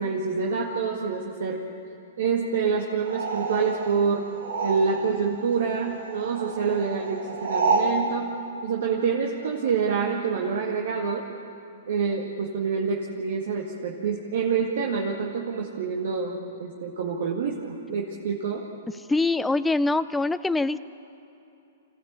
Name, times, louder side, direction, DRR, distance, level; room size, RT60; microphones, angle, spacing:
voice 1, 0.0-1.7 2.2-4.3 4.6-8.4 8.6-11.3 11.9-18.7, right 5 dB, 70° right, -1 dB, 2.0 m, -27 dB
sound 1, 3.0-5.3 5.5-8.0, right 3 dB, 85° right, 2.7 m, -29 dB
voice 2, 19.1-20.8, left 2 dB, 5° left, 13 dB, 0.4 m, -23 dB
25.5 x 16.0 x 8.4 m, 2.7 s
hypercardioid pair, 130°, 0 cm